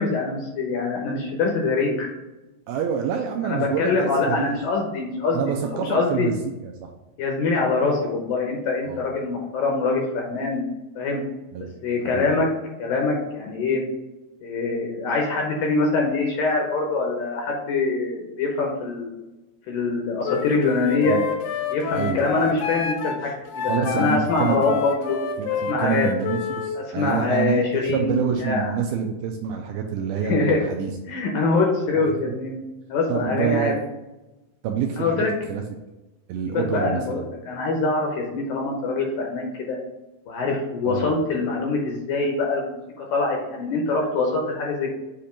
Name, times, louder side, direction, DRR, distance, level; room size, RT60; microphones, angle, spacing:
voice 1, 0.0-2.1 3.4-6.3 7.2-10.6 11.0-11.2 11.8-12.5 12.8-13.8 14.4-19.1 19.7-21.2 21.7-25.2 25.7-26.1 26.7-28.7 30.2-30.6 31.1-32.6 32.9-33.8 35.0-35.3 36.5-39.8 40.3-44.9, left 3 dB, 70° left, 0 dB, 2.2 m, -24 dB
voice 2, 2.7-4.6 5.3-6.9 8.8-9.1 11.5-11.7 12.1-12.3 21.0-21.3 21.9-22.2 23.7-24.8 25.4-30.9 31.9-32.4 33.1-33.8 34.6-35.6 36.3-37.3 40.8-41.1, right 7 dB, 80° right, 2 dB, 2.2 m, -27 dB
Wind instrument woodwind instrument, 20.2-26.7, left 7 dB, 90° left, 2.9 m, -28 dB
8.4 x 2.9 x 5.1 m, 1.0 s
omnidirectional pair, 4.8 m